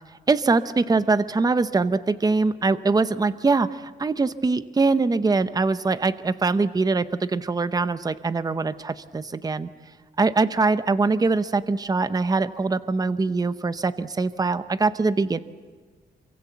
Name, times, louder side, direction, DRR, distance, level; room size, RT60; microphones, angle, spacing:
voice 1, 0.3-9.7 10.2-15.4, right 3 dB, 20° right, 13 dB, 0.8 m, -23 dB
27.5 x 24.5 x 8.1 m, 1.5 s
wide cardioid pair, 160°, 18 cm